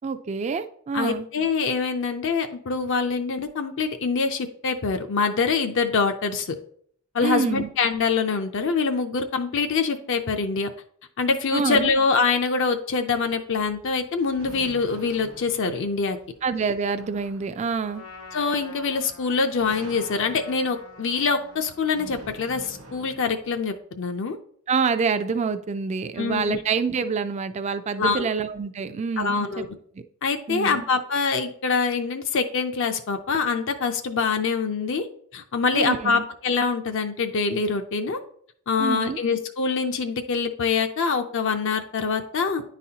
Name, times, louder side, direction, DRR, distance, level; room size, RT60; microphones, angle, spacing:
voice 1, 0.0-1.3 7.2-7.7 11.5-11.9 16.4-18.0 24.7-29.7 30.5-30.9 35.7-36.2 38.8-39.2, right 5 dB, 30° right, 10 dB, 0.3 m, -26 dB
voice 2, 0.9-6.6 7.1-10.7 11.2-16.2 18.3-24.4 26.2-26.6 28.0-28.3 29.2-29.7 30.2-35.1 35.3-38.2 38.7-42.6, left 4 dB, 60° left, 6 dB, 0.5 m, -25 dB
sound 1, 13.2-23.7, right 1 dB, 70° right, 0.9 m, -47 dB
Trumpet, 17.8-23.1, left 3 dB, 90° left, 1.1 m, -46 dB
9.9 x 4.0 x 2.8 m, 0.63 s
head